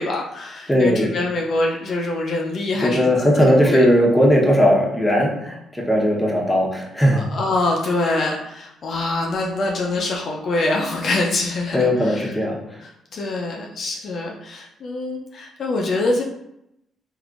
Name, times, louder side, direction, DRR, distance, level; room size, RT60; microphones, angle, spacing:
voice 1, 0.0-3.1 3.7-3.8 7.1-12.4 12.8-16.2, left 2 dB, 60° left, -1 dB, 0.5 m, -24 dB
voice 2, 0.7-1.1 2.8-7.2 11.7-12.8, equal, 10° left, -3 dB, 0.9 m, -18 dB
3.4 x 2.5 x 2.4 m, 0.81 s
supercardioid pair, 60°, 0 cm